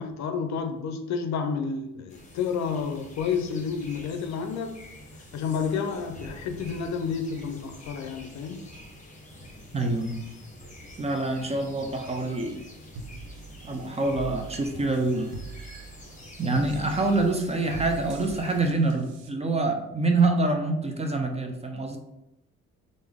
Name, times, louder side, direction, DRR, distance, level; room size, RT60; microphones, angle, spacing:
voice 1, 0.0-4.9 5.3-8.6, left 6 dB, 65° left, 7 dB, 0.5 m, -30 dB
sound 1, 2.1-18.7, left 1 dB, 25° left, 0.9 m, -47 dB
voice 2, 9.7-10.2 11.0-12.6 13.6-15.3 16.4-22.0, right 2 dB, 20° right, 4 dB, 0.5 m, -26 dB
sound 2, 13.0-19.3, right 4 dB, 90° right, 0.7 m, -42 dB
3.4 x 2.6 x 3.4 m, 0.87 s
cardioid pair, 90°, 30 cm